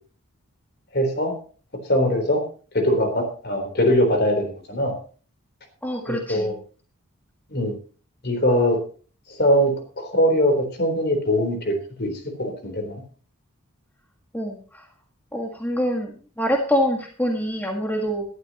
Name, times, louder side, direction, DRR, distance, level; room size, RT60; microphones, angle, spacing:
voice 1, 0.9-1.3 1.9-2.4 2.7-4.9 6.1-6.5 7.5-7.7 8.2-8.8 9.3-12.1 12.4-13.0, equal, 50° left, 6 dB, 3.7 m, -21 dB
voice 2, 5.8-6.5 14.3-14.9 15.3-18.3, equal, 10° left, 1 dB, 1.7 m, -25 dB
18.5 x 12.0 x 3.0 m, 0.39 s
head